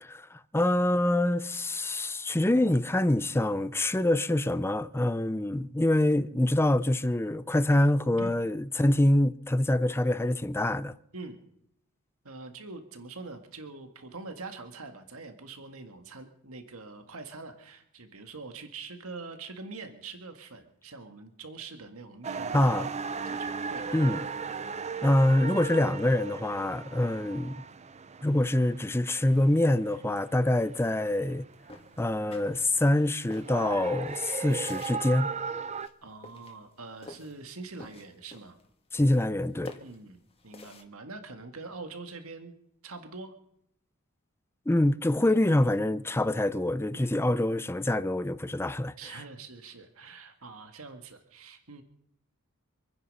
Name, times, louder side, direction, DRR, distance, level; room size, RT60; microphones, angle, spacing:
voice 1, 0.0-10.9 22.5-22.9 23.9-24.2 25.0-27.6 28.2-31.4 32.0-35.3 38.9-39.7 44.7-48.9, left 1 dB, 10° left, 0.5 m, -25 dB
voice 2, 12.2-22.7 23.3-24.0 36.0-38.6 39.8-40.2 40.4-42.6 42.8-43.3 46.9-47.3 49.0-51.8, right 3 dB, 80° right, 1.7 m, -44 dB
sound 1, 22.2-35.9, right 5 dB, 30° right, 0.6 m, -37 dB
sound 2, 31.6-32.9 33.3-35.1 35.7-36.0 36.2-37.4 37.7-38.7 39.0-39.4 39.6-40.8, left 2 dB, 25° left, 1.7 m, -48 dB
26.0 x 9.9 x 5.4 m
head